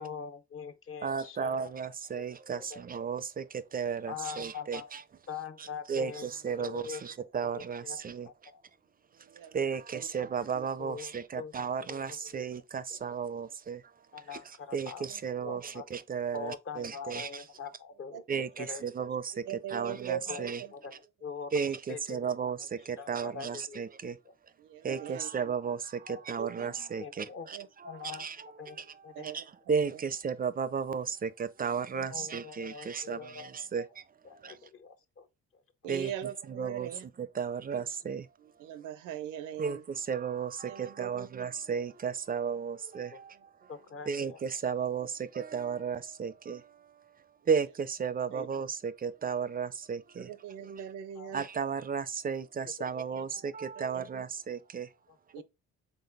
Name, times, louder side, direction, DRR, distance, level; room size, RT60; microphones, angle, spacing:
voice 1, 0.0-1.7 2.1-2.3 2.5-2.8 4.1-4.9 5.3-7.0 7.4-8.6 10.8-11.5 11.9-12.4 14.1-15.0 15.4-15.8 16.3-18.3 18.6-18.9 20.3-22.3 22.6-22.7 23.0-23.8 24.3-24.4 26.1-26.2 27.0-27.5 27.8-28.3 28.6-28.8 29.0-29.4 32.1-33.5 33.8-33.9 34.2-35.3 36.0-36.1 43.1-43.2 43.7-44.4 51.1-51.3 52.6-53.0 55.1-55.4, left 6 dB, 45° left, 0.8 m, -43 dB
voice 2, 1.0-5.0 5.6-8.3 9.5-13.8 14.3-14.4 14.7-17.4 18.3-20.6 21.5-24.2 24.8-34.0 34.4-34.6 35.9-38.3 39.6-43.5 44.1-46.9 47.5-50.3 50.7-50.8 51.3-54.9, right 6 dB, 30° right, 0.4 m, -34 dB
voice 3, 19.5-20.5 24.7-25.3 26.4-26.7 27.5-27.6 29.2-29.4 31.9-32.0 35.8-37.0 37.7-37.8 38.6-39.8 40.6-41.4 48.3-48.5 50.2-51.4 53.8-54.1 55.3-55.4, right 10 dB, 90° right, 0.6 m, -40 dB
4.0 x 3.7 x 3.4 m
cardioid pair, 90°, 30 cm